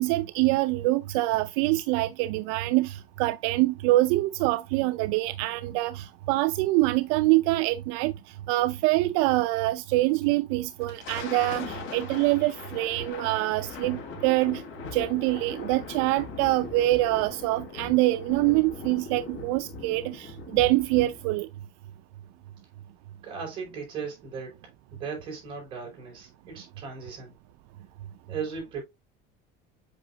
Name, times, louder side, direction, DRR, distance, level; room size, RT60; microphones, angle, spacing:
voice 1, 0.0-8.1 8.5-14.6 14.9-21.5, right 18 dB, 70° right, 0.4 m, -25 dB
Thunder, 10.6-21.4, left 5 dB, 65° left, 3.3 m, -40 dB
voice 2, 23.2-24.6 24.9-27.4 28.3-28.8, right 5 dB, 30° right, 4.8 m, -37 dB
8.0 x 5.7 x 2.6 m
cardioid pair, 175°, 18 cm